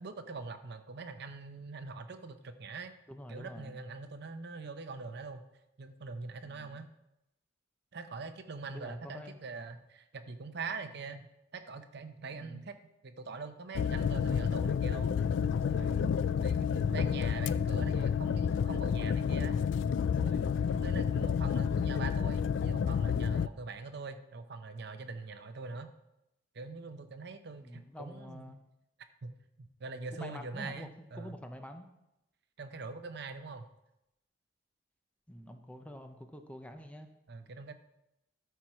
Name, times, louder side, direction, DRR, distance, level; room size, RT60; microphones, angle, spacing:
voice 1, 0.0-2.9 3.3-5.4 5.8-6.9 7.9-12.7 13.0-15.2 15.7-19.6 20.2-25.9 26.5-28.5 29.2-31.4 32.6-33.6 37.3-37.7, right 4 dB, 60° right, 9 dB, 0.7 m, -43 dB
voice 2, 3.1-3.8 6.4-6.8 8.7-9.4 12.3-12.6 27.6-28.6 30.1-31.9 35.3-37.1, equal, 5° left, 6 dB, 0.6 m, -47 dB
sound 1, 13.7-23.5, left 7 dB, 70° left, 0.3 m, -30 dB
13.0 x 4.6 x 4.7 m, 0.87 s
head